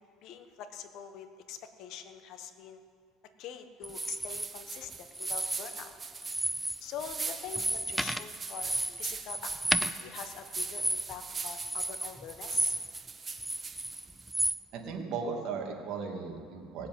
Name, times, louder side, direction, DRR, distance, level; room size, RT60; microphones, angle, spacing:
voice 1, 0.2-2.8 3.4-5.9 6.8-9.5 9.8-12.7, left 8 dB, 60° left, 8 dB, 1.2 m, -44 dB
sound 1, 3.8-4.5 5.1-5.9 6.2-6.8 7.1-13.0 13.3-14.6, equal, ahead, 0.4 m, -33 dB
sound 2, 3.9-14.3, right 4 dB, 20° right, 0.9 m, -42 dB
voice 2, 14.7-16.9, right 5 dB, 55° right, 1 dB, 2.5 m, -36 dB
18.5 x 7.6 x 8.8 m, 2.1 s
cardioid pair, 135°, 0 cm